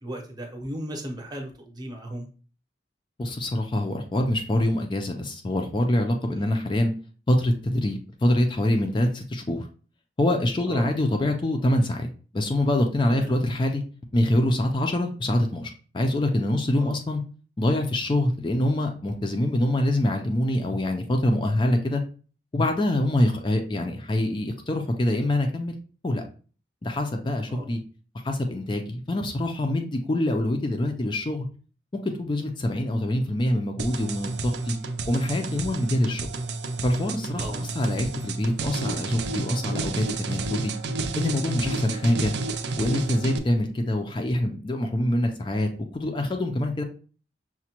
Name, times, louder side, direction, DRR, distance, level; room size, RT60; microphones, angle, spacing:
voice 1, 0.0-2.3 6.3-6.6 10.7-10.9 13.1-13.4 16.8-17.0 27.5-27.7 37.3-37.7 41.6-42.1, equal, 25° right, 2 dB, 0.7 m, -37 dB
voice 2, 3.2-6.9 7.3-9.7 10.2-12.1 12.3-13.8 14.1-17.2 17.6-22.0 22.5-25.7 26.0-26.2 26.8-27.8 28.2-31.5 32.0-34.8 35.1-36.3 36.8-40.7 41.1-42.3 42.8-46.8, left 1 dB, 25° left, 4 dB, 0.4 m, -25 dB
sound 1, 33.8-43.4, right 3 dB, 75° right, 0.5 m, -31 dB
5.9 x 2.2 x 2.9 m, 0.39 s
head